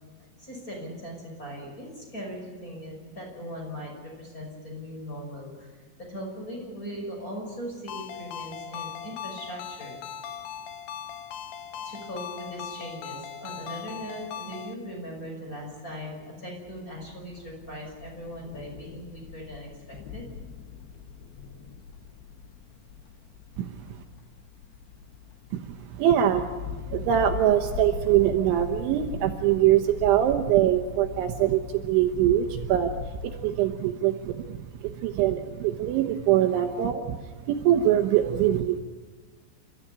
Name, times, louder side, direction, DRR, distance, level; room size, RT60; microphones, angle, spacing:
voice 1, 0.4-5.7 6.0-10.0 11.7-20.2, equal, 15° left, 0 dB, 5.9 m, -39 dB
Ringtone, 7.9-14.7, left 8 dB, 90° left, 2.0 m, -39 dB
sound 1, 16.6-33.5, left 8 dB, 65° left, 2.6 m, -41 dB
voice 2, 23.6-24.0 25.5-38.8, right 11 dB, 75° right, 5 dB, 3.2 m, -24 dB
29.0 x 14.0 x 10.0 m, 1.4 s
omnidirectional pair, 5.8 m